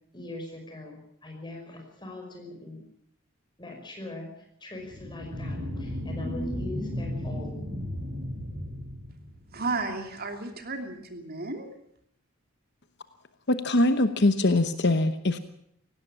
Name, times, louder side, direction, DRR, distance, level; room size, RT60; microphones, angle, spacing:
voice 1, 0.1-2.8 3.6-4.3 4.6-7.8, left 2 dB, 20° left, 2 dB, 5.4 m, -41 dB
sound 1, 4.8-9.8, equal, 75° right, 5.8 m, -34 dB
voice 2, 9.5-11.7, right 3 dB, 45° right, 5 dB, 2.8 m, -33 dB
voice 3, 13.5-15.4, left 2 dB, 50° left, 10 dB, 1.0 m, -23 dB
18.5 x 16.5 x 8.8 m, 0.71 s
head